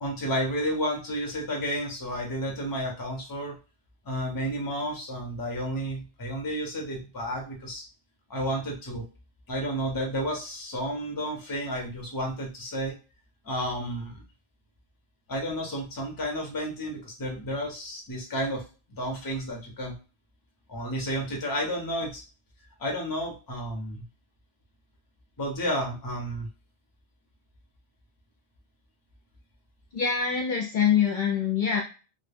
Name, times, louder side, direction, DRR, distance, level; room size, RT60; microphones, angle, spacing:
voice 1, 0.0-3.6 4.0-7.8 8.3-9.1 9.5-13.0 13.4-14.2 15.3-18.6 19.0-20.0 20.7-22.2 22.8-24.0 25.4-26.5, equal, 25° left, 0 dB, 0.6 m, -31 dB
voice 2, 29.9-31.8, left 7 dB, 55° left, -1 dB, 0.6 m, -24 dB
2.2 x 2.1 x 3.3 m, 0.33 s
omnidirectional pair, 1.1 m